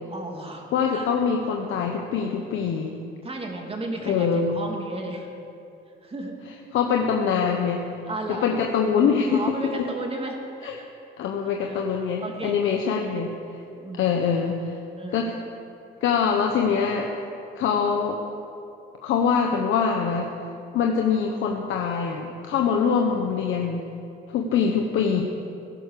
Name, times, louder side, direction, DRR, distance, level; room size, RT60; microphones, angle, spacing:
voice 1, 0.1-0.7 0.9-1.1 3.2-5.3 6.0-6.4 8.0-8.6 9.3-10.9 11.6-11.8 12.2-12.6 12.8-13.2 13.8-14.1 15.0-15.3, right 2 dB, 30° right, 1 dB, 2.8 m, -34 dB
voice 2, 0.7-3.0 4.0-4.5 6.7-7.9 8.3-9.4 10.6-10.7 11.2-13.3 14.0-14.8 15.1-15.3 16.0-17.2 17.6-18.2 19.0-20.3 20.7-23.8 24.3-25.2, left 6 dB, 80° left, 2 dB, 1.2 m, -24 dB
16.0 x 11.5 x 6.8 m, 2.7 s
cardioid pair, 90°, 20 cm